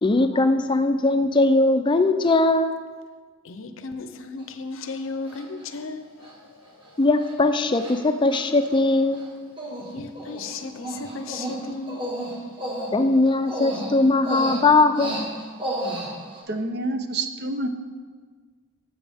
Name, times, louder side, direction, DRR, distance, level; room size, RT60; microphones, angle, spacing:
voice 1, 0.0-2.7 7.0-9.3 12.9-15.3, left 2 dB, 20° left, 9 dB, 0.4 m, -20 dB
voice 2, 3.4-7.0 9.9-12.1, left 3 dB, 65° left, 9 dB, 0.7 m, -35 dB
Human voice, 4.4-4.5 5.3-5.6 6.2-6.3 6.7-6.9 7.2-7.3 7.7-8.0 8.3-9.3 9.6-9.9 10.1-16.4, right 1 dB, 25° right, 1.6 m, -33 dB
voice 3, 16.5-17.7, right 2 dB, 50° right, 7 dB, 0.7 m, -28 dB
12.5 x 7.8 x 3.5 m, 1.5 s
head